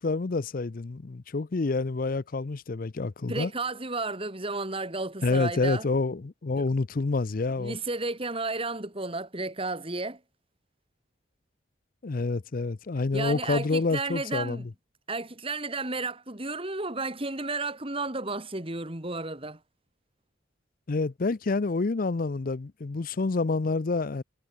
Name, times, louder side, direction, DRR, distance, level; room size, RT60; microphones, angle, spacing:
voice 1, 0.0-3.5 5.2-7.8 12.0-14.7 20.9-24.2, left 3 dB, 45° left, 0.5 m, -28 dB
voice 2, 3.3-5.8 6.6-6.7 7.6-10.2 13.1-14.7 15.1-19.6, right 3 dB, 30° right, 2.7 m, -32 dB
head